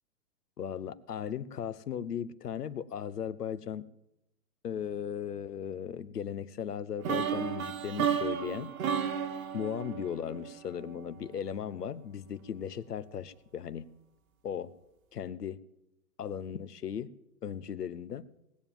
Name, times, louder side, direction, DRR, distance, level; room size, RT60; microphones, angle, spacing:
voice 1, 0.6-3.8 4.6-8.8 9.5-13.9 14.4-14.7 15.1-15.6 16.2-17.1 17.4-18.3, left 8 dB, 90° left, 16 dB, 1.0 m, -37 dB
sound 1, 7.0-11.0, right 7 dB, 65° right, 1.5 m, -33 dB
19.0 x 7.3 x 9.0 m, 0.85 s
hypercardioid pair, 130°, 46 cm